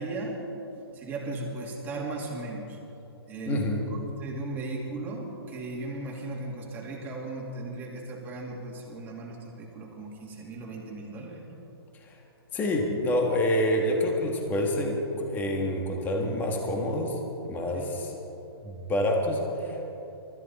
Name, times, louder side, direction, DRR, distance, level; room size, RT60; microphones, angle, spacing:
voice 1, 0.0-2.8 3.3-11.6 17.7-17.9, right 2 dB, 15° right, -2 dB, 2.5 m, -37 dB
voice 2, 3.5-3.8 11.9-12.2 12.5-17.2 17.5-18.1 18.6-19.8, left 1 dB, 15° left, 1 dB, 1.7 m, -27 dB
24.5 x 13.5 x 4.2 m, 3.0 s
hypercardioid pair, 160°, 13 cm